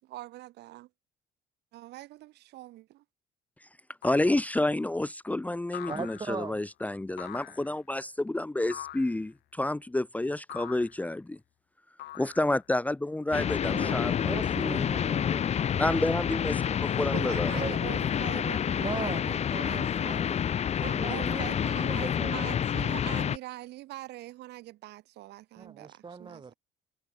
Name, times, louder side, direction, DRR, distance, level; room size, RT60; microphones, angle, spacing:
voice 1, 0.0-0.9 1.7-3.0 17.1-26.4, right 17 dB, 80° right, 7.7 m, -43 dB
sound 1, 4.0-4.4 5.7-6.5 7.2-7.8 8.7-9.2 10.5-11.0 12.0-12.7, left 14 dB, 75° left, 6.1 m, -44 dB
voice 2, 4.0-11.4 12.1-14.8 15.7-17.5, left 1 dB, 10° left, 0.9 m, -29 dB
voice 3, 5.9-6.6 13.6-15.4 15.9-16.5 17.5-20.2 20.8-22.6 25.6-26.5, right 5 dB, 25° right, 3.4 m, -40 dB
sound 2, 13.3-23.4, left 8 dB, 40° left, 0.8 m, -28 dB
cardioid pair, 110°, 17 cm